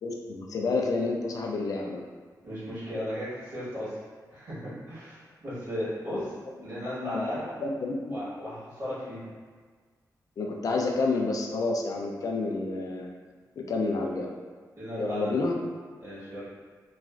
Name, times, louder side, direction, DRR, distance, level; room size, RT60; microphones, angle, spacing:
voice 1, 0.0-2.0 7.0-8.2 10.4-13.1 13.6-14.3 15.0-15.5, left 3 dB, 60° left, 0 dB, 0.4 m, -29 dB
voice 2, 2.4-3.9 4.3-6.3 6.6-7.6 8.1-9.3 14.8-15.4 16.0-16.4, equal, 55° right, -11 dB, 1.3 m, -35 dB
3.0 x 2.4 x 2.4 m, 1.5 s
wide cardioid pair, 150°, 7 cm